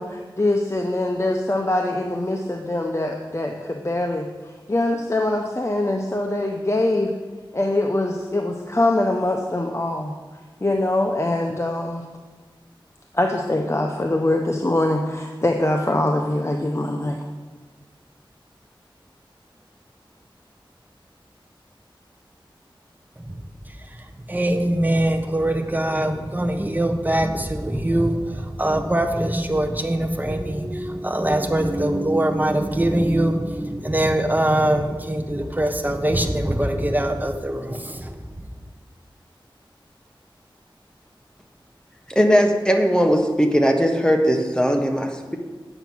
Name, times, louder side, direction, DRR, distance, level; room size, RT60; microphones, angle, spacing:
voice 1, 0.0-7.1 7.5-10.1 10.6-12.0 13.1-17.2, left 1 dB, 30° left, 2 dB, 0.8 m, -23 dB
voice 2, 24.3-38.1, right 1 dB, 20° right, 4 dB, 1.1 m, -22 dB
voice 3, 42.1-45.4, equal, 10° left, 3 dB, 1.1 m, -19 dB
9.0 x 6.9 x 6.1 m, 1.3 s
wide cardioid pair, 60°, 9 cm